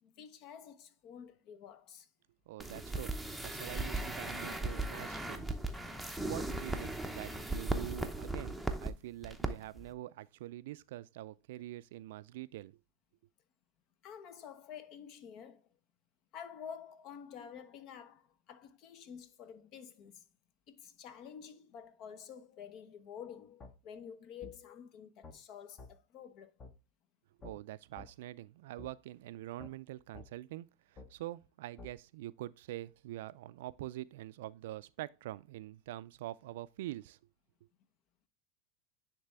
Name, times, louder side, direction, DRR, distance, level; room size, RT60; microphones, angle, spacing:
voice 1, 0.0-2.1 14.0-15.7 16.3-20.2 20.7-26.5, left 8 dB, 50° left, 0.8 m, -50 dB
voice 2, 2.5-5.4 6.3-12.8 27.4-37.2, right 15 dB, 75° right, 0.3 m, -45 dB
sound 1, 2.6-8.9 9.2-9.5 9.8-9.9, right 2 dB, ahead, 0.7 m, -37 dB
sound 2, 23.6-23.7 24.4-24.6 25.2-25.4 25.8-25.9 26.6-26.7 27.4-27.5 28.0-28.1 28.8-28.9 29.6-29.7 30.1-30.3 31.0-31.1 31.8-31.9, left 3 dB, 30° left, 1.0 m, -50 dB
9.6 x 3.3 x 3.4 m
hypercardioid pair, 105°, 0 cm